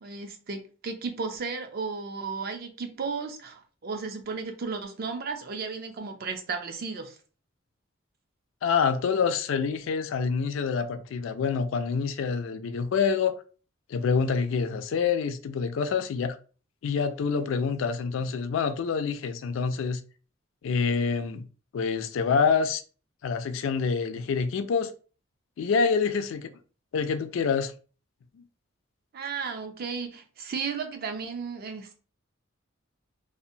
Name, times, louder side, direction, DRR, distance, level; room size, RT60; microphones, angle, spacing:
voice 1, 0.0-7.2 29.1-32.0, right 5 dB, 50° right, 0.4 m, -34 dB
voice 2, 8.6-13.4 13.9-16.4 16.8-20.0 20.6-21.5 21.7-22.8 23.2-24.9 25.6-26.5 26.9-27.7, left 5 dB, 70° left, 0.3 m, -26 dB
2.7 x 2.0 x 2.6 m
head